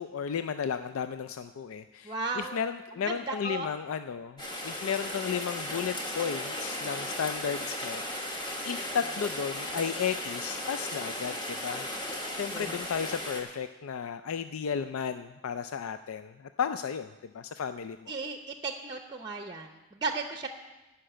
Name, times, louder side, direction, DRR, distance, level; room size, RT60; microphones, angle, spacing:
voice 1, 0.0-8.4 8.6-11.9 12.3-18.1, left 7 dB, 90° left, 10 dB, 0.4 m, -34 dB
voice 2, 2.0-2.6 3.0-3.7 12.5-12.8 18.1-20.5, right 3 dB, 20° right, 5 dB, 0.6 m, -35 dB
Rain, 4.4-13.4, left 1 dB, 20° left, 1.3 m, -36 dB
11.5 x 5.7 x 8.8 m, 1.1 s
head